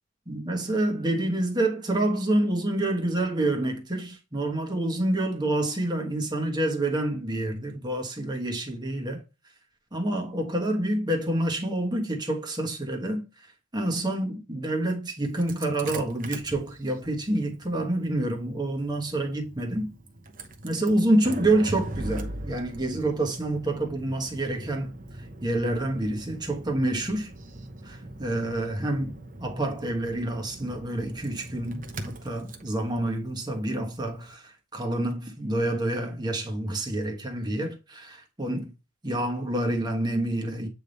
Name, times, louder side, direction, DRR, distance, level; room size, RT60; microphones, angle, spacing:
voice 1, 0.3-9.2 9.9-13.2 13.7-19.9 20.6-24.9 25.4-27.3 27.8-38.7 39.0-40.7, right 1 dB, 20° right, 1.3 m, -28 dB
Engine starting, 15.3-34.2, right 1 dB, 40° right, 0.9 m, -41 dB
8.3 x 3.5 x 4.0 m
head